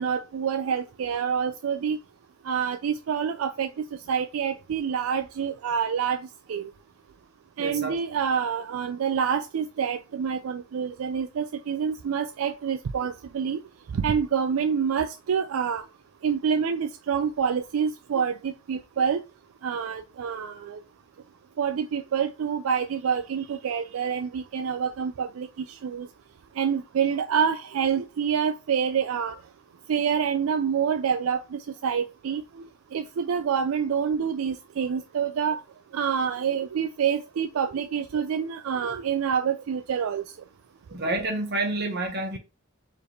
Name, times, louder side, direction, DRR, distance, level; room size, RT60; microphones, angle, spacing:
voice 1, 0.0-2.0 2.4-6.7 7.6-13.6 13.9-15.8 16.2-19.2 19.6-20.8 21.6-26.1 26.6-29.4 29.9-32.4 32.9-35.6 35.9-40.2, right 7 dB, 85° right, 0.4 m, -27 dB
voice 2, 7.6-7.9 40.9-42.4, right 2 dB, 55° right, 1.4 m, -28 dB
4.5 x 3.3 x 3.2 m
head